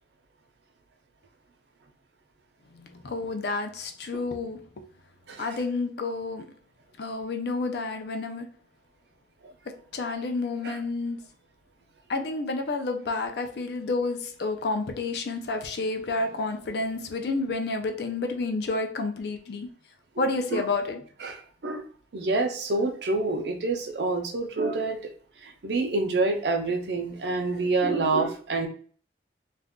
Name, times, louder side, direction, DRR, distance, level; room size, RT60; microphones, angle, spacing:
voice 1, 2.7-4.9 5.4-6.5 7.0-8.5 9.7-11.2 12.1-19.7 20.2-21.0, left 3 dB, 60° left, 0.5 m, -30 dB
voice 2, 21.2-21.8 22.1-25.1 25.4-28.7, right 3 dB, 65° right, 0.6 m, -27 dB
2.5 x 2.3 x 3.5 m
head